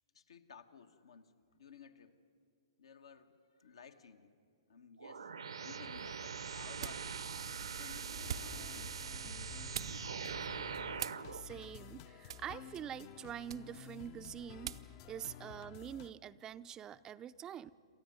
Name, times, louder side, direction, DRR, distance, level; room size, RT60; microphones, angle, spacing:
voice 1, 0.1-2.1 2.8-4.3 4.7-5.3 5.6-7.2 7.6-8.6, left 6 dB, 75° left, 7 dB, 1.4 m, -56 dB
sound 1, 5.0-11.4, right 6 dB, 80° right, 1.0 m, -43 dB
sound 2, 5.8-15.0, right 9 dB, 65° right, 0.6 m, -49 dB
sound 3, 8.2-16.1, left 11 dB, 45° left, 0.7 m, -52 dB
voice 2, 11.3-14.7 15.1-17.7, right 9 dB, 20° right, 12 dB, 0.5 m, -45 dB
27.5 x 14.0 x 9.4 m, 2.3 s
hypercardioid pair, 120°, 3 cm